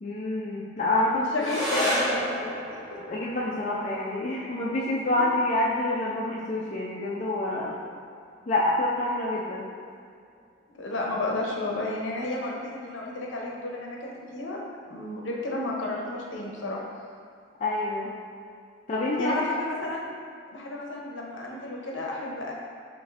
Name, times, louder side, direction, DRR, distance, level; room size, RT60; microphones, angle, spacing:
voice 1, 0.0-1.2 3.1-7.8 8.5-9.6 17.6-18.1 18.9-19.3, left 2 dB, 35° left, -6 dB, 0.3 m, -27 dB
voice 2, 1.3-2.5 10.7-14.6 14.9-16.8 19.2-20.1 20.5-22.5, left 2 dB, 65° left, -2 dB, 0.7 m, -32 dB
sound 1, 1.4-10.4, equal, ahead, 1.0 m, -35 dB
7.1 x 2.5 x 2.5 m, 2.3 s
head